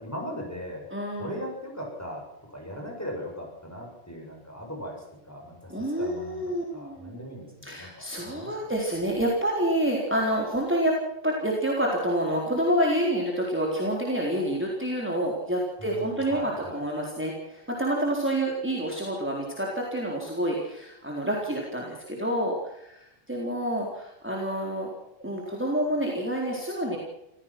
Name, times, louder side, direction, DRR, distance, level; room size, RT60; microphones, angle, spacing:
voice 1, 0.0-0.9 1.2-8.6 15.8-16.8, equal, 15° left, 0 dB, 7.3 m, -39 dB
voice 2, 0.9-1.4 5.7-7.2 7.6-10.9 11.2-24.9 25.2-27.0, right 1 dB, 10° right, -2 dB, 4.0 m, -28 dB
26.5 x 16.5 x 6.1 m, 0.82 s
omnidirectional pair, 1.1 m